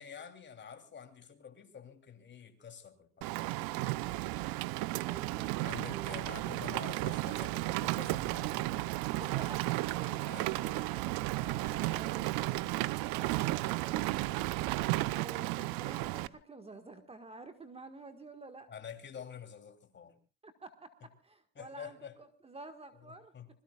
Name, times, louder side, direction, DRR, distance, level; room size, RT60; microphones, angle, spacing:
voice 1, 0.0-3.3 5.6-8.8 10.2-10.5 18.7-20.1 21.5-22.2 23.0-23.5, left 7 dB, 30° left, 7 dB, 3.3 m, -48 dB
Rain, 3.2-16.3, right 19 dB, 75° right, 0.9 m, -34 dB
voice 2, 5.0-6.5 9.2-14.1 15.1-18.7 20.4-23.3, right 2 dB, 15° right, 8 dB, 1.7 m, -50 dB
25.5 x 22.0 x 2.4 m, 0.36 s
cardioid pair, 120°, 36 cm